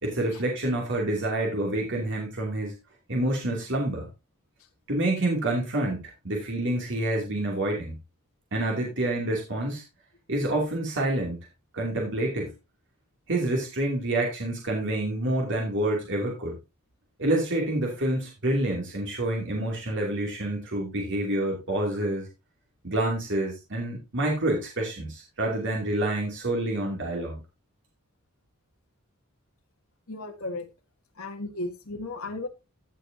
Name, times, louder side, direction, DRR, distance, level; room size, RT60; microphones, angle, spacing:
voice 1, 0.0-2.7 3.1-4.1 4.9-8.0 8.5-9.8 10.3-11.4 11.7-12.5 13.3-16.6 17.2-22.3 22.8-27.4, right 1 dB, 55° right, 2.7 m, -28 dB
voice 2, 30.1-30.6 31.2-32.5, left 2 dB, 65° left, 1.6 m, -34 dB
15.5 x 6.5 x 2.7 m
head